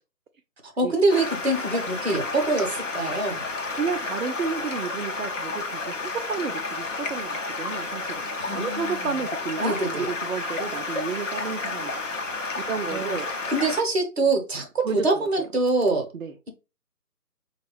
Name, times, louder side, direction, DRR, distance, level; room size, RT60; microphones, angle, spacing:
voice 1, 0.6-3.5 8.4-9.2 9.6-10.1 12.9-13.1 13.5-16.1, right 2 dB, 40° right, 0.9 m, -25 dB
Stream, 1.1-13.8, left 3 dB, 50° left, 0.8 m, -31 dB
voice 2, 3.8-11.9 12.6-13.3 14.8-15.5 16.1-16.3, right 5 dB, 60° right, 0.5 m, -31 dB
4.3 x 2.3 x 3.1 m
figure-of-eight pair, 160°, 47 cm